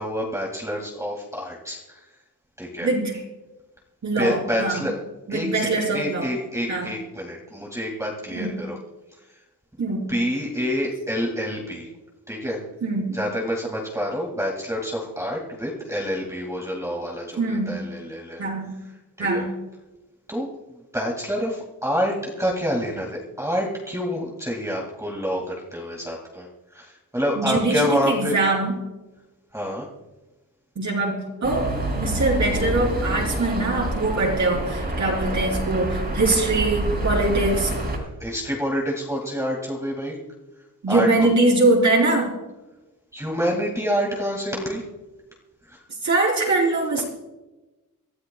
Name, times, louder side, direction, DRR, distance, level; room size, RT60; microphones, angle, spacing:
voice 1, 0.0-2.0 2.6-2.9 4.2-5.0 5.3-8.8 10.1-11.9 12.3-12.6 13.1-18.5 19.2-19.5 20.3-28.4 29.5-29.9 38.2-40.2 40.9-41.3 43.1-44.8 45.7-45.8, equal, 10° right, -2 dB, 2.1 m, -27 dB
voice 2, 2.8-3.1 4.0-4.9 5.3-6.3 6.7-6.9 8.3-8.6 9.8-10.1 12.8-13.2 17.4-17.8 18.4-18.7 19.2-19.5 27.4-28.7 30.8-31.7 32.0-37.7 40.8-42.3 46.0-47.0, right 2 dB, 55° right, -3 dB, 4.0 m, -22 dB
sound 1, 31.4-38.0, right 1 dB, 30° right, 4.3 m, -27 dB
25.0 x 14.0 x 2.3 m, 1.1 s
wide cardioid pair, 130°, 34 cm